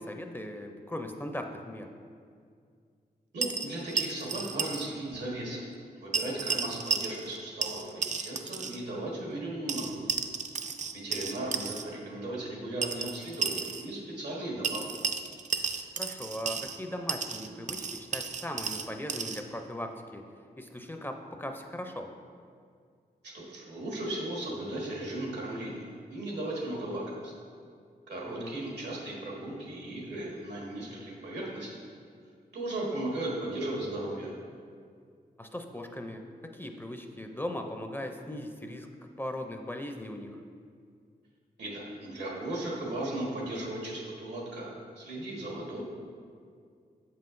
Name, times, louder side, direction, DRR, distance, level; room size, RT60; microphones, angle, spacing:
voice 1, 0.0-1.9 16.0-20.2 20.6-22.1 28.3-28.6 35.4-38.9 39.2-40.4, left 1 dB, 10° left, 4 dB, 0.4 m, -39 dB
voice 2, 3.3-5.6 6.0-10.1 10.9-14.9 23.3-27.3 28.1-31.8 32.5-34.3 41.6-45.8, right 1 dB, 90° right, -4 dB, 1.4 m, -36 dB
sound 1, 3.4-4.9 5.1-5.2 6.1-7.4 7.6-8.8 9.7-11.8 12.8-13.9 14.6-16.8 17.1-19.4, right 5 dB, 45° right, 0.4 m, -33 dB
7.3 x 5.6 x 2.5 m, 2.2 s
cardioid pair, 65°, 17 cm